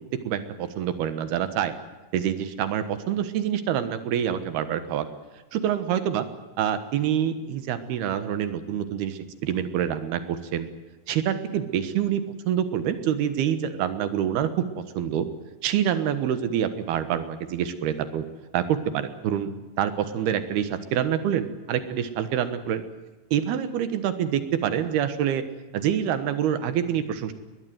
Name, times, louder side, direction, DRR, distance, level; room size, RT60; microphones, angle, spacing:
voice 1, 0.2-1.7 2.1-5.1 5.5-6.3 6.6-10.7 11.1-14.5 14.8-15.3 15.6-18.3 18.5-19.5 19.8-22.8 23.3-25.4 25.7-27.3, right 9 dB, 75° right, 11 dB, 3.2 m, -26 dB
21.5 x 21.0 x 9.4 m, 1.2 s
omnidirectional pair, 4.8 m